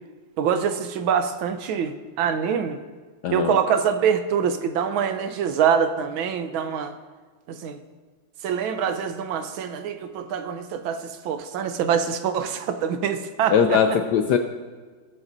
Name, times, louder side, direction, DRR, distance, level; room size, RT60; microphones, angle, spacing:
voice 1, 0.4-2.8 3.3-6.9 7.5-7.8 8.4-14.0, right 7 dB, 75° right, 9 dB, 1.5 m, -25 dB
voice 2, 3.2-3.6 13.5-14.4, left 7 dB, 75° left, 6 dB, 1.0 m, -20 dB
20.0 x 7.9 x 2.7 m, 1.4 s
omnidirectional pair, 2.3 m